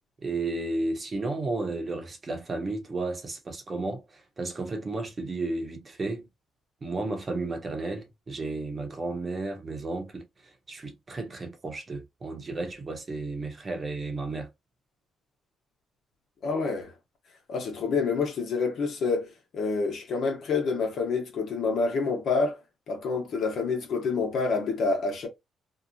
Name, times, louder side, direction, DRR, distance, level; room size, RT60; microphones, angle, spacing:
voice 1, 0.2-6.3 6.8-10.2 10.7-14.5, right 2 dB, 35° right, 0.9 m, -33 dB
voice 2, 16.4-16.9 17.5-22.5 22.9-25.3, left 4 dB, 65° left, 1.0 m, -27 dB
2.8 x 2.3 x 2.6 m
cardioid pair, 90°, 0 cm